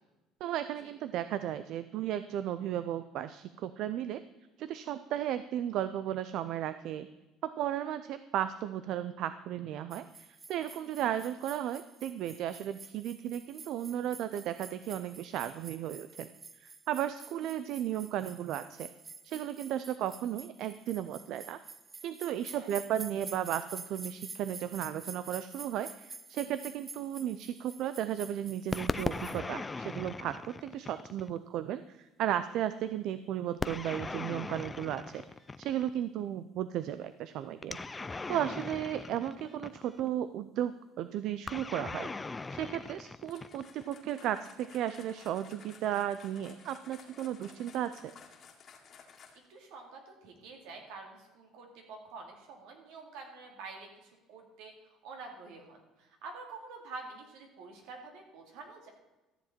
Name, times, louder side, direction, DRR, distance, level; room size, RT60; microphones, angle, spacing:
voice 1, 0.4-4.2 4.6-7.1 7.4-16.3 16.6-18.9 19.2-21.6 22.0-30.4 30.6-35.2 35.6-37.8 38.3-48.1, right 11 dB, 65° right, 13 dB, 0.4 m, -35 dB
sound 1, 9.9-29.4, right 4 dB, 25° right, 0.6 m, -49 dB
sound 2, 28.7-31.4 33.6-36.0 37.6-40.1 41.5-43.9, left 3 dB, 20° left, 0.5 m, -39 dB
sound 3, 43.3-49.6, left 6 dB, 45° left, 2.1 m, -55 dB
voice 2, 49.5-58.9, right 3 dB, 80° right, 2 dB, 2.5 m, -48 dB
13.5 x 7.3 x 4.4 m, 1.1 s
cardioid pair, 105°, 0 cm